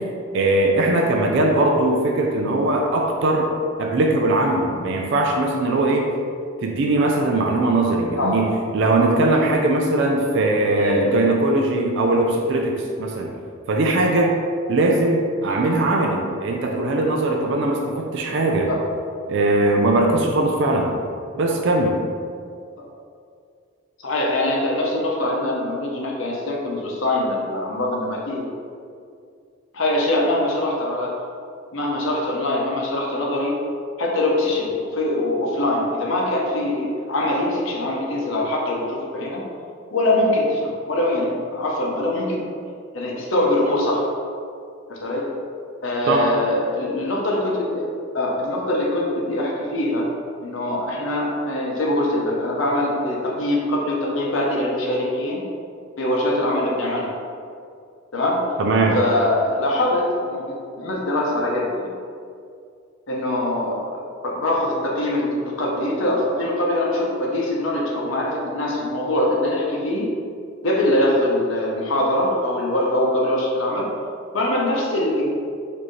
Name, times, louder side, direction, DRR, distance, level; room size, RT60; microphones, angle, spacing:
voice 1, 0.3-3.5 3.8-6.1 6.6-13.3 13.7-14.3 14.7-18.7 19.3-20.9 21.4-22.0 46.1-46.3 58.6-59.0, right 2 dB, 65° right, 0 dB, 0.4 m, -20 dB
voice 2, 10.7-11.2 15.5-15.6 18.7-18.8 22.8-22.9 24.0-28.5 29.7-31.1 31.7-33.6 34.0-39.5 39.9-42.5 42.9-44.0 44.9-45.3 45.8-47.9 48.1-50.1 50.4-55.5 56.0-57.1 58.1-58.4 58.9-61.9 63.1-70.1 70.6-73.9 74.3-75.3, left 1 dB, 70° left, -3 dB, 0.7 m, -23 dB
4.3 x 2.7 x 3.1 m, 2.3 s
head